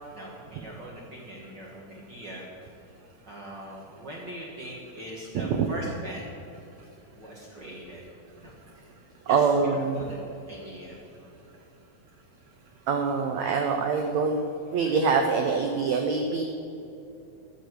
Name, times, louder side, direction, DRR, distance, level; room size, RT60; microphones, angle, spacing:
voice 1, 0.1-2.4 3.3-6.3 7.2-8.0 8.4-8.6 9.2-10.2 10.5-11.0, right 1 dB, 55° right, -3 dB, 1.2 m, -41 dB
voice 2, 5.3-5.7 9.3-10.1 12.9-14.4 14.7-16.4, right 5 dB, 90° right, 4 dB, 1.5 m, -24 dB
13.5 x 6.7 x 7.8 m, 2.9 s
omnidirectional pair, 4.2 m